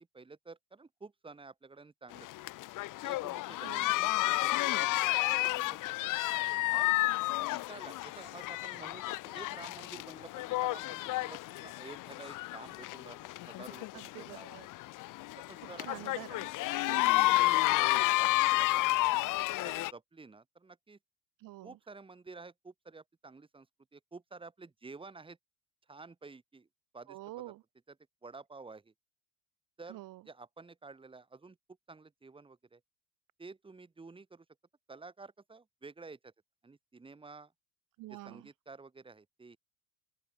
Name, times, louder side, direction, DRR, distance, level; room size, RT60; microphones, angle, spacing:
voice 1, 0.0-2.5 3.0-6.1 6.7-7.0 7.4-14.5 15.3-16.1 17.5-21.0 21.6-23.7 23.9-25.4 25.9-26.7 26.9-27.2 27.9-28.0 28.2-28.9 29.8-30.0 30.2-31.6 31.9-32.8 33.4-34.4 34.9-36.3 36.6-37.5 38.1-39.6, right 3 dB, 15° right, 3.3 m, -51 dB
sound 1, 2.1-19.9, left 19 dB, 55° left, 1.4 m, -31 dB
voice 2, 3.6-4.0 13.9-14.7 15.9-16.5 16.8-17.2 21.4-21.8 27.1-27.6 29.9-30.2 38.0-38.5, right 17 dB, 55° right, 5.0 m, -47 dB
open air
supercardioid pair, 125°, 38 cm